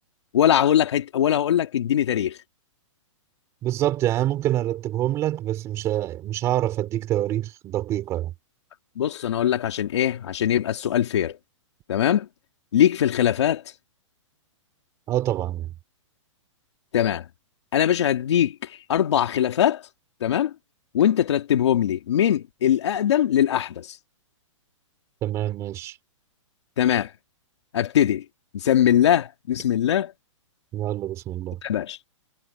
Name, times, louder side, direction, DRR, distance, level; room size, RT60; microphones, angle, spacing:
voice 1, 0.3-2.4 9.0-11.4 11.9-12.3 12.7-13.6 16.9-17.3 17.7-19.8 20.2-20.5 20.9-24.0 26.8-27.1 27.7-28.2 28.5-30.1 31.6-32.0, left 10 dB, 60° left, 2.3 m, -21 dB
voice 2, 3.6-8.3 15.1-15.7 25.2-26.0 30.7-31.6, right 13 dB, 15° right, 3.3 m, -26 dB
hypercardioid pair, 170°, 16 cm